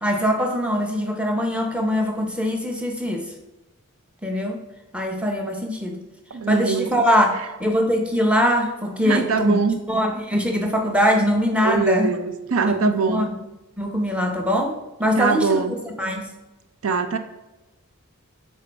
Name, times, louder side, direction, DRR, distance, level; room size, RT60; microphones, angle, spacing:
voice 1, 0.0-3.3 4.2-4.6 4.9-6.0 6.5-9.6 9.9-12.1 12.7-13.4 13.8-16.3, equal, 5° right, 2 dB, 0.7 m, -22 dB
voice 2, 6.3-7.0 9.0-9.8 11.6-13.3 15.2-15.7 16.8-17.2, right 5 dB, 65° right, 9 dB, 0.5 m, -23 dB
7.9 x 3.7 x 3.4 m, 1.0 s
head